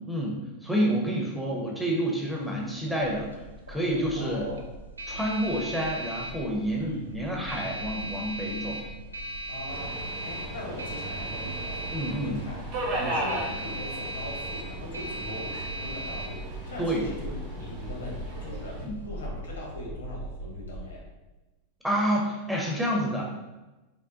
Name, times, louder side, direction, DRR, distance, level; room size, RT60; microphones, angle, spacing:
voice 1, 0.1-3.3 3.7-4.5 5.1-8.8 11.9-12.4 16.8-17.0 18.8-19.0 21.8-23.2, equal, ahead, -3 dB, 0.5 m, -28 dB
sound 1, 2.3-19.1, right 2 dB, 80° right, 0.4 m, -39 dB
sound 2, 3.4-20.9, equal, 45° left, 0.6 m, -43 dB
voice 2, 4.2-4.7 6.7-7.7 9.5-11.9 12.2-21.0, left 1 dB, 70° left, -2 dB, 0.8 m, -40 dB
Subway metro underground, 9.7-18.8, right 1 dB, 50° right, 0.9 m, -37 dB
3.7 x 2.1 x 2.4 m, 1.1 s
figure-of-eight pair, 90°, 0 cm